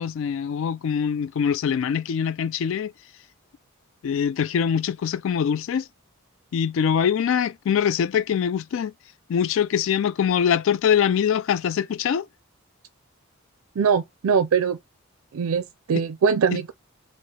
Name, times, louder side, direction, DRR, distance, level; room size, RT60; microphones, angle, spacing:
voice 1, 0.0-2.9 4.0-5.9 6.5-8.9 9.3-12.3 15.9-16.0 16.5-16.6, left 8 dB, 65° left, 0.3 m, -23 dB
voice 2, 13.8-14.8 15.3-16.7, right 6 dB, 80° right, 0.4 m, -22 dB
4.7 x 2.1 x 4.1 m
head